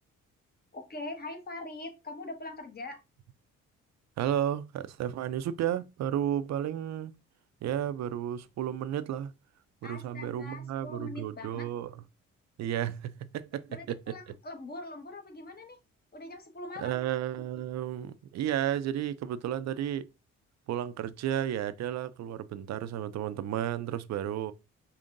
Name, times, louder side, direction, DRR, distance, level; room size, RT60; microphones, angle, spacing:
voice 1, 0.7-3.0 9.8-11.7 13.5-15.8 16.1-17.0, left 2 dB, 30° left, 1.3 m, -42 dB
voice 2, 4.2-7.1 7.6-9.3 9.8-11.9 12.6-14.0 16.8-20.1 20.7-24.5, right 10 dB, 65° right, 0.5 m, -32 dB
5.2 x 2.8 x 2.6 m
cardioid pair, 90°, 30 cm